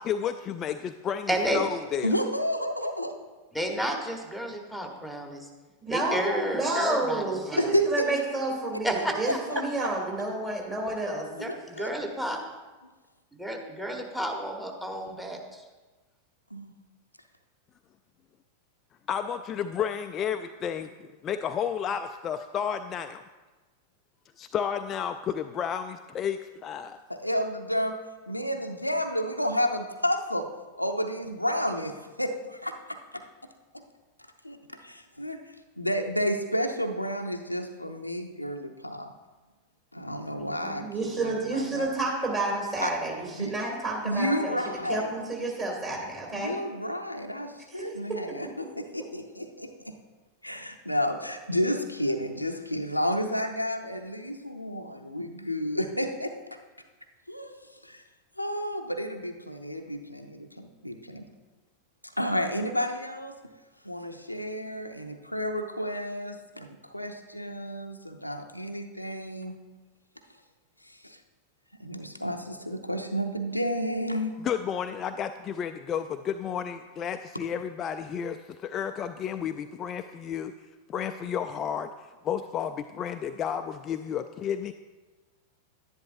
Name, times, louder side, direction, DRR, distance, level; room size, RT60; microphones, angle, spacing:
voice 1, 0.0-2.2 19.1-23.2 24.4-27.0 74.4-80.5 80.9-81.9 82.2-84.7, left 8 dB, 30° left, 8 dB, 0.3 m, -32 dB
voice 2, 1.3-1.6 3.5-5.5 5.9-7.7 8.8-9.4 11.4-11.5 11.7-12.4 13.4-15.6, right 1 dB, 5° right, 3 dB, 1.2 m, -31 dB
voice 3, 2.0-3.1 7.6-8.1 9.5-9.9 11.4-11.9 16.5-16.7 27.1-28.0 28.3-30.5 30.8-33.2 33.7-33.8 34.4-35.4 35.8-39.1 39.9-41.9 42.8-42.9 43.4-43.5 44.0-45.1 46.3-50.0 50.4-56.3 57.3-57.5 57.8-58.0 58.4-61.2 62.2-63.4 63.8-69.5 70.8-71.2 71.8-74.4, equal, 90° left, 5 dB, 0.6 m, -31 dB
voice 4, 5.8-11.2 40.4-44.6 44.9-46.5 47.8-47.9, right 2 dB, 25° right, -2 dB, 2.8 m, -30 dB
10.5 x 10.5 x 2.6 m, 1.2 s
figure-of-eight pair, 90°, 0 cm